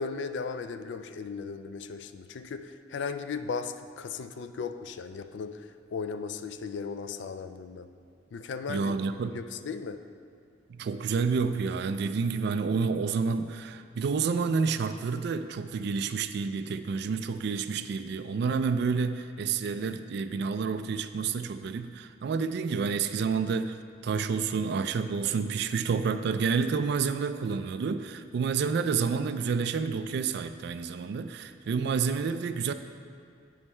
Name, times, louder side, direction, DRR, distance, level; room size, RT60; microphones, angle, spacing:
voice 1, 0.0-7.9 8.3-8.9 9.3-10.0, left 5 dB, 65° left, 10 dB, 0.4 m, -36 dB
voice 2, 8.7-9.3 10.7-23.8 24.0-32.7, right 5 dB, 60° right, 10 dB, 0.3 m, -29 dB
8.1 x 5.4 x 4.3 m, 2.3 s
head